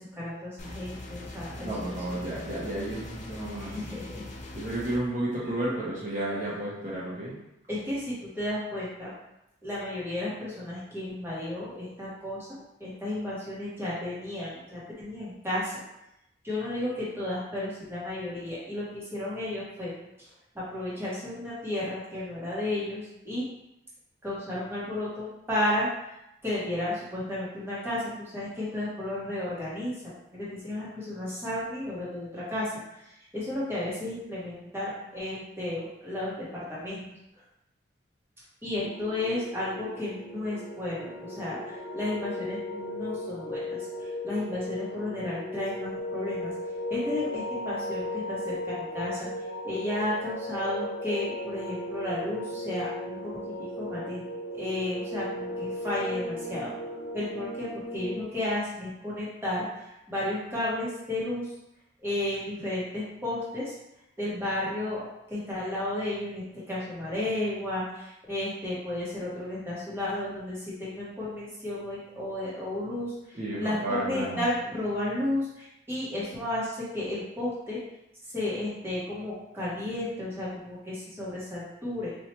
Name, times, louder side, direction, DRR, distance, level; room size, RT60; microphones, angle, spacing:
voice 1, 0.0-2.2 3.6-4.2 5.4-5.6 7.7-9.1 9.6-12.5 12.8-15.8 16.4-19.9 20.2-23.4 24.2-37.0 38.6-46.5 46.9-49.3 49.6-54.2 54.5-56.7 57.1-61.5 62.0-63.7 64.2-77.8 78.2-82.1, left 1 dB, 10° right, -8 dB, 1.0 m, -33 dB
sound 1, 0.6-5.0, left 1 dB, 35° left, 0.4 m, -42 dB
voice 2, 1.6-3.8 4.5-7.4 73.3-74.4, right 1 dB, 40° right, -7 dB, 0.8 m, -32 dB
sound 2, 38.8-58.2, left 1 dB, 70° left, 0.7 m, -36 dB
4.2 x 2.3 x 3.0 m, 0.87 s
head